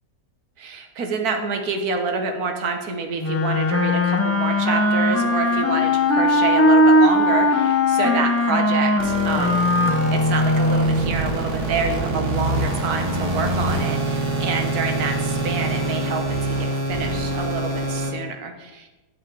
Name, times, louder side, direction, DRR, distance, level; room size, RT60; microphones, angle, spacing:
voice 1, 0.6-18.9, right 4 dB, 65° right, 4 dB, 1.6 m, -28 dB
Wind instrument woodwind instrument, 3.2-11.1, left 1 dB, 20° left, 0.4 m, -19 dB
sound 1, 9.0-18.1, right 2 dB, 50° right, 1.6 m, -25 dB
8.4 x 4.9 x 7.5 m, 1.1 s
omnidirectional pair, 1.7 m